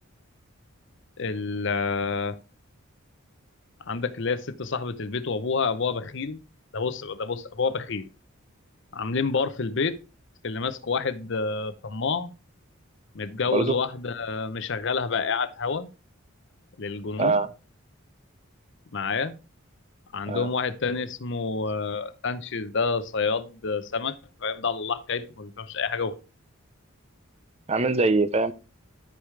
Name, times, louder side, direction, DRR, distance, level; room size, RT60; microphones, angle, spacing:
voice 1, 1.2-2.4 3.9-6.4 6.7-8.1 8.9-10.0 10.4-12.3 13.1-15.9 16.8-17.4 18.9-19.3 20.1-24.2 24.4-26.1, left 4 dB, 55° left, 0.7 m, -28 dB
voice 2, 17.2-17.5 20.3-20.5 27.7-28.5, right 3 dB, 30° right, 0.5 m, -23 dB
13.5 x 4.9 x 3.2 m
head